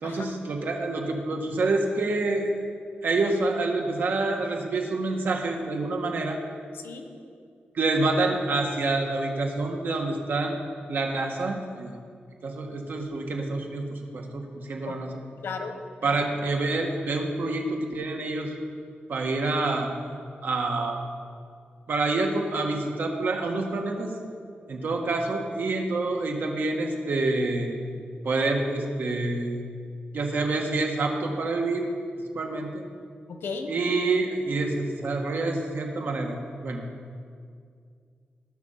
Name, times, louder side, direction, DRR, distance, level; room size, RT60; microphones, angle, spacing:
voice 1, 0.0-2.5 3.0-6.4 7.7-10.6 10.9-11.9 12.4-15.1 16.0-18.5 19.1-19.9 20.4-21.0 21.9-24.1 24.7-27.8 28.2-29.6 30.1-31.8 32.3-32.8 33.7-36.4 36.6-36.8, right 3 dB, 60° right, 2 dB, 1.6 m, -27 dB
voice 2, 6.7-7.1 14.9-15.0 15.4-16.3 33.3-33.7, left 4 dB, 90° left, 6 dB, 1.2 m, -35 dB
18.5 x 6.2 x 5.7 m, 2.2 s
wide cardioid pair, 130°, 4 cm